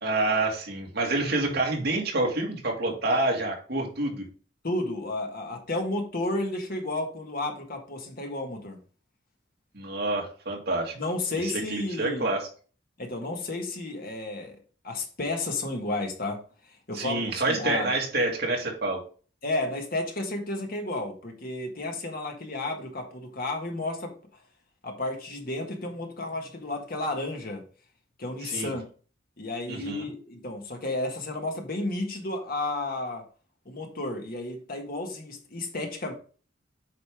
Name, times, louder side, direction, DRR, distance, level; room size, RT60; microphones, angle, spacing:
voice 1, 0.0-4.2 9.7-10.9 11.4-12.4 16.9-19.0 28.4-28.7 29.7-30.0, right 2 dB, 60° right, 2.1 m, -27 dB
voice 2, 4.6-8.8 11.0-12.4 13.0-14.6 14.8-17.9 19.4-24.2 24.8-27.6 28.2-28.8 29.4-33.3 33.7-36.1, left 2 dB, 50° left, 1.6 m, -32 dB
8.1 x 5.3 x 3.6 m
head